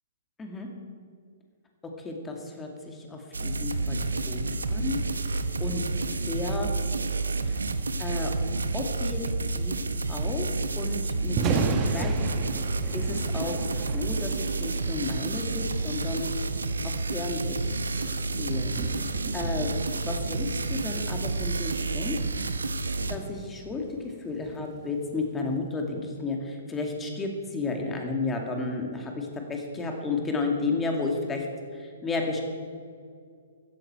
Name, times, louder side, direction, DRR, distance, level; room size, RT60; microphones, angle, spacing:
voice 1, 2.0-5.0 5.3-5.8 6.3-6.7 7.5-7.6 8.0-8.3 8.7-9.2 9.5-9.7 10.1-10.5 10.8-11.6 11.9-12.1 12.9-16.3 16.8-17.6 18.4-22.2 23.1-31.4 31.7-32.4, left 3 dB, 15° left, 2 dB, 2.3 m, -33 dB
sound 1, 3.3-23.2, right 3 dB, 75° right, 1.0 m, -30 dB
Thunder, 11.2-25.4, right 5 dB, 25° right, 1.3 m, -36 dB
15.5 x 13.0 x 4.5 m, 2.2 s
figure-of-eight pair, 120°, 0 cm